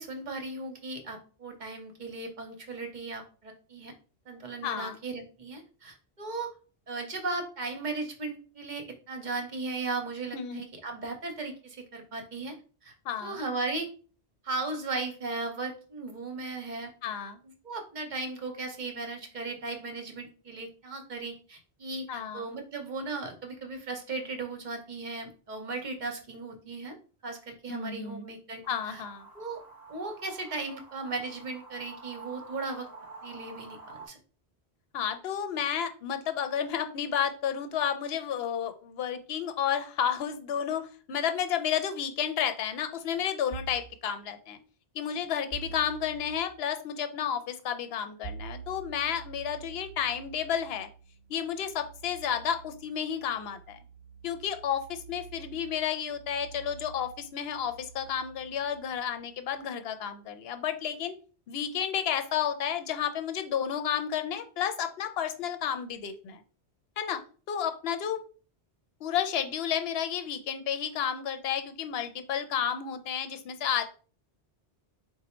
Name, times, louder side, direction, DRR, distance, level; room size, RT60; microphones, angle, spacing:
voice 1, 0.0-3.9 4.3-6.5 6.9-12.5 12.8-12.9 13.2-13.9 14.4-16.9 17.6-26.9 27.2-28.6 28.9-29.0 29.3-29.6 29.9-32.9 33.2-34.2, right 3 dB, 50° right, 4 dB, 0.9 m, -36 dB
voice 2, 4.6-5.0 10.3-10.6 13.0-13.4 17.0-17.4 22.1-22.4 27.7-28.3 28.7-29.3 34.9-44.6 44.9-50.9 51.3-53.8 54.2-61.2 61.5-66.4 67.0-67.2 67.5-68.2 69.0-73.8, left 8 dB, 70° left, 9 dB, 0.8 m, -31 dB
sound 1, 28.6-34.1, right 3 dB, 20° right, 0.9 m, -48 dB
sound 2, 43.5-44.0 45.5-46.5 48.2-59.6, right 6 dB, 40° left, 1.0 m, -47 dB
4.0 x 2.2 x 4.3 m, 0.38 s
omnidirectional pair, 1.1 m